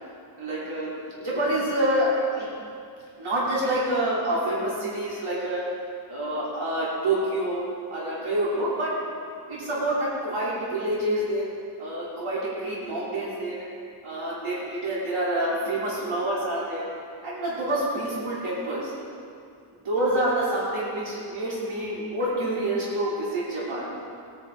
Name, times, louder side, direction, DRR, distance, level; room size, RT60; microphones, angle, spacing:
voice 1, 0.4-0.9 1.2-2.5 3.2-5.7 6.1-8.9 9.5-11.5 11.8-13.7 14.0-16.9 17.2-18.9 19.8-23.9, right 1 dB, 80° right, -8 dB, 3.3 m, -27 dB
18.0 x 9.9 x 3.7 m, 2.4 s
wide cardioid pair, 100°, 50 cm